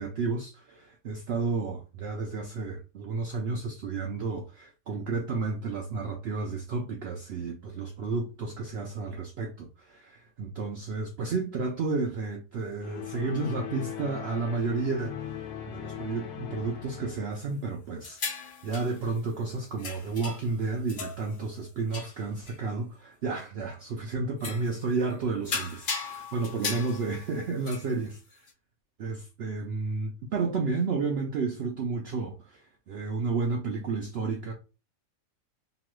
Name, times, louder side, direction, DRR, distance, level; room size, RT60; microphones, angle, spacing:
voice 1, 0.0-28.4 29.0-34.5, right 4 dB, 65° right, 0.6 m, -32 dB
sound 1, 12.8-17.4, left 9 dB, 80° left, 1.1 m, -39 dB
sound 2, 18.0-19.3 19.8-20.6 20.9-21.6 21.9-22.6 23.4-23.5 24.4-24.8 25.1-25.2 25.4-28.5, left 5 dB, 55° left, 0.6 m, -37 dB
2.9 x 2.3 x 3.0 m
omnidirectional pair, 1.5 m